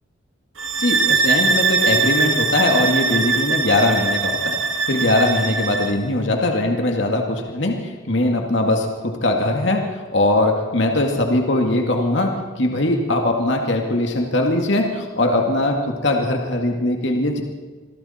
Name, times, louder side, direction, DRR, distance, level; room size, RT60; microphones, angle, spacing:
sound 1, 0.6-6.0, right 4 dB, 85° right, 1.6 m, -21 dB
voice 1, 0.8-4.6 4.9-17.4, left 2 dB, 60° left, 2 dB, 2.2 m, -20 dB
27.5 x 22.5 x 4.4 m, 1.4 s
head